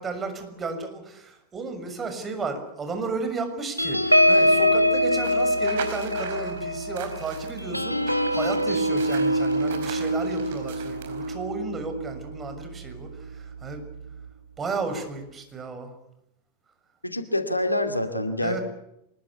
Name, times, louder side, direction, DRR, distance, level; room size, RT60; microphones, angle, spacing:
voice 1, 0.0-13.8 14.6-15.9 18.4-18.6, right 3 dB, 20° right, 7 dB, 6.5 m, -33 dB
sound 1, 3.8-12.7 13.1-13.3 13.6-13.9, equal, 90° right, 1.7 m, -24 dB
sound 2, 5.2-11.3, right 8 dB, 55° right, 4.7 m, -41 dB
voice 2, 17.0-18.6, left 1 dB, 85° left, 8 dB, 2.5 m, -26 dB
24.5 x 22.0 x 8.5 m, 0.81 s
figure-of-eight pair, 90°, 0 cm